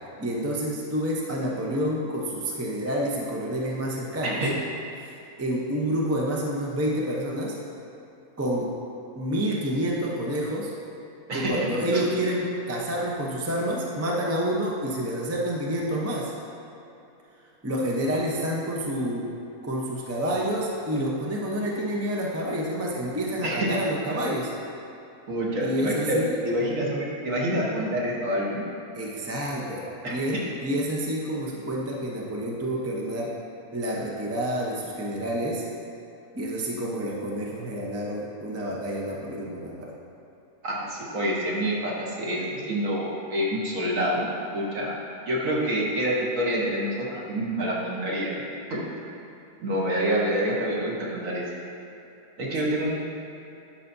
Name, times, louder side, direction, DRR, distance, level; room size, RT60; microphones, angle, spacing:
voice 1, 0.2-4.5 5.0-7.5 8.4-8.7 9.1-10.7 11.3-16.3 17.6-19.3 19.6-24.5 25.6-26.4 28.9-33.3 33.7-35.6 36.3-39.9, equal, 15° right, -3 dB, 0.4 m, -28 dB
voice 2, 4.2-4.5 11.3-12.0 23.4-23.8 25.3-28.6 30.0-30.2 40.6-44.9 45.3-48.8 49.6-51.4 52.4-52.9, equal, 60° right, -4 dB, 1.5 m, -27 dB
11.5 x 5.7 x 2.7 m, 2.9 s
omnidirectional pair, 1.7 m